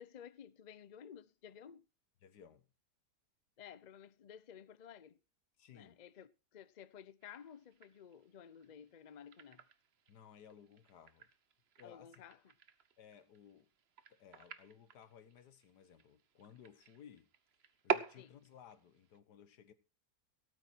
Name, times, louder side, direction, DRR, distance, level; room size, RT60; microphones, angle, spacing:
voice 1, 0.0-1.9 3.6-5.2 5.7-9.6 11.8-12.5 18.2-18.3, left 8 dB, 50° left, 0.5 m, -54 dB
voice 2, 2.2-2.7 5.6-6.0 10.1-11.3 11.8-12.3 13.0-13.7 14.1-17.3 17.8-19.7, left 8 dB, 85° left, 1.7 m, -59 dB
sound 1, 7.2-19.2, right 7 dB, 45° right, 1.0 m, -46 dB
17.0 x 9.0 x 4.5 m
omnidirectional pair, 1.7 m